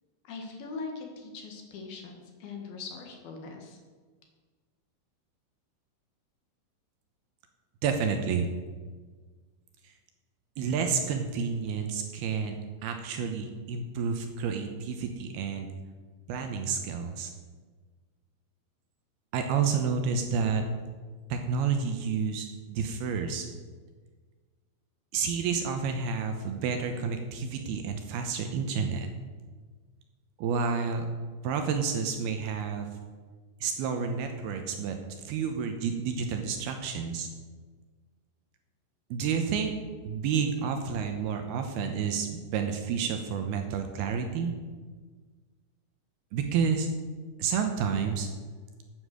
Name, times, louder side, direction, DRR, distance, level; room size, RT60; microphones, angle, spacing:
voice 1, 0.2-3.8, left 4 dB, 60° left, 2 dB, 3.1 m, -41 dB
voice 2, 7.8-8.5 10.6-12.6 12.8-15.7 16.3-17.3 19.3-20.6 21.3-23.5 25.1-29.1 30.4-31.1 31.4-32.9 33.6-35.0 35.2-37.3 39.1-39.7 40.0-44.5 46.3-46.9 47.4-48.3, right 6 dB, 75° right, 5 dB, 2.4 m, -30 dB
9.9 x 9.3 x 7.9 m, 1.4 s
omnidirectional pair, 5.5 m